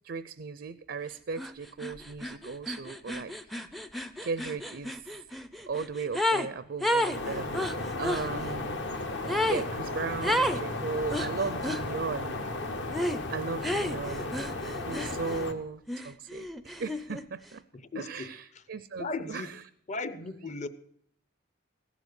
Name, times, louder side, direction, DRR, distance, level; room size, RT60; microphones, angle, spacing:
voice 1, 0.0-3.3 4.2-5.0 5.7-8.8 9.5-12.4 13.3-14.4 14.9-17.6 18.0-19.5, right 4 dB, 55° right, 0.5 m, -36 dB
sound 1, 1.4-1.5 1.8-6.5 6.8-8.3 9.3-9.7 10.2-10.6 11.1-11.8 12.9-13.2 13.6-15.5 15.9-17.2, equal, ahead, 0.4 m, -31 dB
sound 2, 7.1-15.5, left 2 dB, 60° left, 1.2 m, -35 dB
voice 2, 15.1-15.5 17.7-18.3 19.0-19.5 19.9-20.7, left 3 dB, 35° left, 0.7 m, -37 dB
16.0 x 7.2 x 8.0 m
head